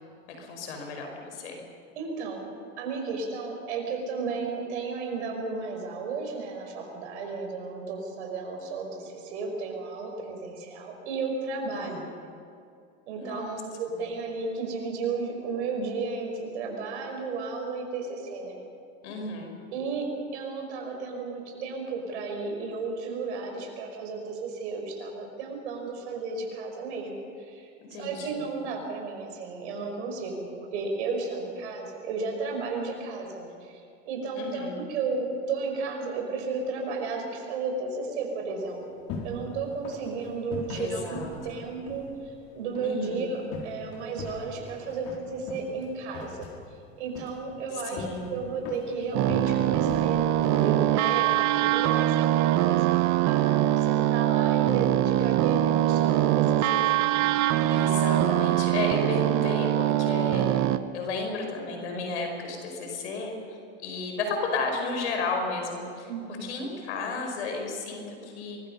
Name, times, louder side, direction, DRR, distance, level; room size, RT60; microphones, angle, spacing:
voice 1, 0.3-1.6 11.8-12.1 13.1-13.6 19.0-19.6 27.9-28.5 34.4-34.8 40.7-41.6 42.8-43.2 47.8-48.4 57.7-60.7 60.9-66.1 66.4-68.6, left 3 dB, 85° left, 3 dB, 5.1 m, -33 dB
voice 2, 2.0-2.5 2.8-12.2 13.1-18.6 19.7-27.7 28.0-33.8 34.1-38.8 39.2-46.5 47.0-57.2 66.0-66.6, right 4 dB, 80° right, 2 dB, 5.4 m, -33 dB
sound 1, 38.6-52.1, left 3 dB, 60° left, 4.6 m, -42 dB
sound 2, 49.1-60.8, right 13 dB, 50° right, 1.1 m, -23 dB
23.5 x 22.0 x 5.6 m, 2.5 s
hypercardioid pair, 95°, 34 cm